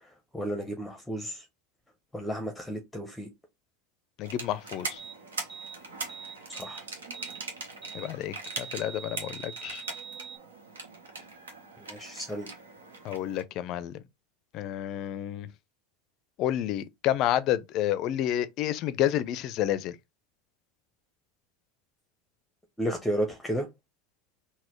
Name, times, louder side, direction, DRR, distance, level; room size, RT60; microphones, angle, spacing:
voice 1, 0.0-1.5 2.1-3.3 6.5-6.8 11.8-12.5 22.8-23.7, equal, 10° left, 0.7 m, -33 dB
voice 2, 4.2-5.0 7.9-9.8 13.0-14.0 14.5-15.5 16.4-20.0, left 12 dB, 50° left, 0.4 m, -30 dB
sound 1, 4.2-13.4, right 3 dB, 85° right, 0.9 m, -41 dB
sound 2, 5.0-5.2 5.5-5.8 6.1-6.8 7.1-7.4 7.8-8.1 8.4-10.4, right 7 dB, 30° right, 1.6 m, -43 dB
4.0 x 2.1 x 3.0 m
hypercardioid pair, 85°, 0 cm